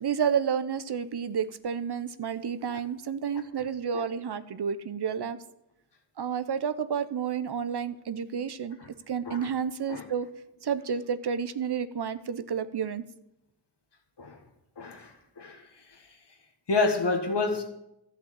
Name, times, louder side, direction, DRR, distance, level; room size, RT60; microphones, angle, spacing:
voice 1, 0.0-5.4 6.2-8.8 9.1-10.3 10.6-13.0, right 7 dB, 70° right, 13 dB, 0.7 m, -30 dB
voice 2, 14.8-15.1 15.4-15.6 16.7-17.6, left 3 dB, 75° left, 4 dB, 1.7 m, -27 dB
12.0 x 5.8 x 7.5 m, 0.85 s
cardioid pair, 40°, 42 cm